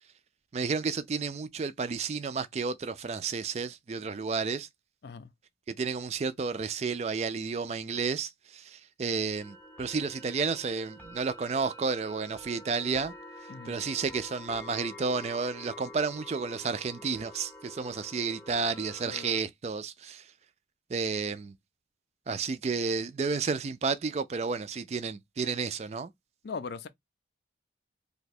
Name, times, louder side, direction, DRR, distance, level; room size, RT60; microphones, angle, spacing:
voice 1, 0.5-4.7 5.7-13.1 13.6-20.3 20.9-21.6 22.3-26.1, right 5 dB, 35° right, 0.3 m, -31 dB
sound 1, 9.4-19.4, left 1 dB, 10° left, 0.6 m, -48 dB
voice 2, 19.0-19.4 26.4-26.9, left 5 dB, 60° left, 0.4 m, -40 dB
2.7 x 2.2 x 4.1 m
head